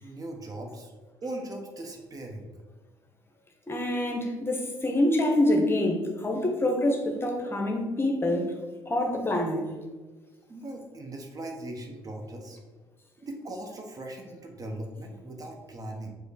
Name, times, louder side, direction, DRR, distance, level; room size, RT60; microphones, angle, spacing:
voice 1, 0.0-0.9 1.2-2.5 10.5-12.6 13.2-16.1, right 1 dB, 35° right, 2 dB, 0.7 m, -39 dB
voice 2, 3.7-8.5 8.9-9.6, left 1 dB, 20° left, 2 dB, 0.8 m, -26 dB
4.8 x 2.0 x 4.1 m, 1.3 s
figure-of-eight pair, 45°, 10 cm